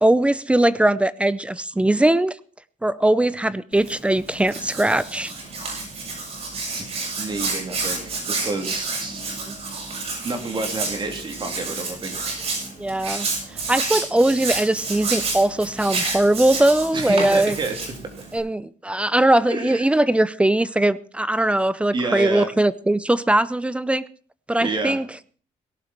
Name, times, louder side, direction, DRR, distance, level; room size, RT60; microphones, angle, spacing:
voice 1, 0.0-2.4 2.8-5.3 9.5-9.6 12.8-13.3 13.7-17.6 18.3-24.1 24.5-25.1, right 1 dB, 10° right, 18 dB, 0.6 m, -20 dB
Hands, 3.7-18.4, right 3 dB, 55° right, 7.6 m, -30 dB
voice 2, 7.2-9.3 10.2-12.1 16.9-17.7 18.2-18.3 19.5-19.8 21.9-22.5 24.6-25.0, right 3 dB, 35° right, 5 dB, 3.4 m, -29 dB
17.5 x 11.5 x 4.5 m, 0.41 s
cardioid pair, 135°, 13 cm